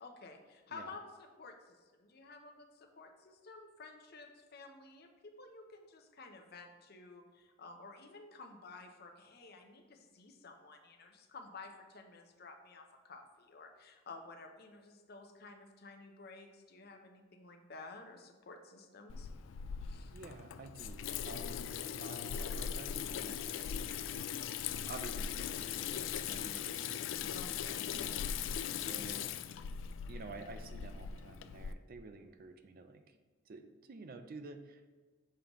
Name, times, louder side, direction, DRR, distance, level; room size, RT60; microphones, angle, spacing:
voice 1, 0.0-19.3 19.8-20.1 27.3-27.8, left 3 dB, 55° left, 4 dB, 0.7 m, -53 dB
Water tap faucet / Sink (filling or washing), 19.1-31.7, left 8 dB, 80° left, 0.3 m, -40 dB
voice 2, 20.1-24.5 24.9-27.3 27.9-28.4 28.7-29.4 30.1-33.2 33.5-34.9, right 3 dB, 50° right, 8 dB, 0.5 m, -51 dB
6.7 x 5.2 x 3.0 m, 1.4 s
head